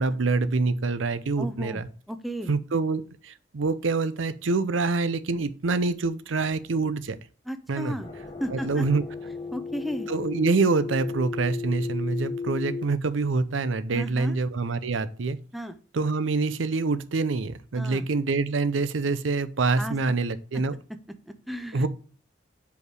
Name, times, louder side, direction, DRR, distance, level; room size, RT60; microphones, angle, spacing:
voice 1, 0.0-1.9 2.5-7.2 7.7-8.0 8.5-9.0 10.1-15.4 15.9-20.7 21.7-21.9, right 3 dB, 85° right, 0.6 m, -26 dB
voice 2, 1.4-1.8 2.1-2.5 7.5-8.1 8.4-8.9 9.5-10.1 13.9-14.4 15.5-15.8 17.8-18.1 19.8-19.9 20.5-20.6 21.3-21.9, equal, ahead, 0.5 m, -34 dB
sound 1, 8.0-12.8, left 4 dB, 25° left, 1.3 m, -35 dB
5.1 x 4.9 x 4.7 m
head